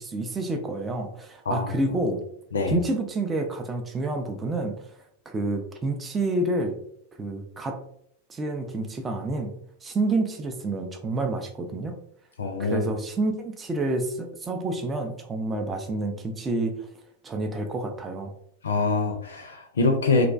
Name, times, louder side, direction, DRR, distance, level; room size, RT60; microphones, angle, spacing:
voice 1, 0.0-2.2 2.7-4.8 5.3-6.8 7.2-7.8 8.3-9.6 9.8-12.0 12.6-16.9 17.2-18.3, right 2 dB, 15° right, 5 dB, 0.4 m, -28 dB
voice 2, 12.4-12.8 18.6-20.3, left 3 dB, 70° left, 3 dB, 0.4 m, -24 dB
2.4 x 2.1 x 2.4 m, 0.69 s
figure-of-eight pair, 90°, 0 cm